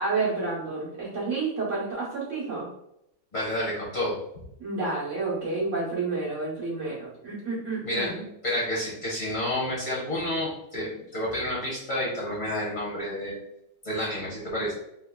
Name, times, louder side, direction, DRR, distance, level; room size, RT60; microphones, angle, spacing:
voice 1, 0.0-2.7 4.6-8.2, right 3 dB, 50° right, -7 dB, 1.3 m, -30 dB
voice 2, 3.3-4.2 7.8-8.1 8.4-13.4 13.8-14.7, left 1 dB, 45° left, -6 dB, 1.1 m, -29 dB
3.2 x 3.0 x 2.2 m, 0.80 s
omnidirectional pair, 1.9 m